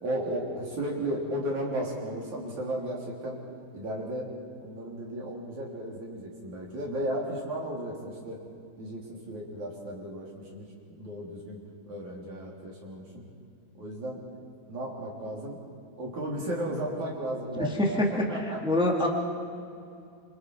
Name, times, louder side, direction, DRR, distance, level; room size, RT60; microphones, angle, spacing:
voice 1, 0.0-3.4 3.7-4.3 4.6-8.4 8.8-13.2 13.8-14.2 14.7-15.6 16.0-18.6, right 1 dB, 50° right, -2 dB, 4.7 m, -34 dB
voice 2, 17.8-18.2 18.6-19.1, left 1 dB, ahead, -1 dB, 1.0 m, -24 dB
27.0 x 27.0 x 4.8 m, 2.5 s
omnidirectional pair, 4.6 m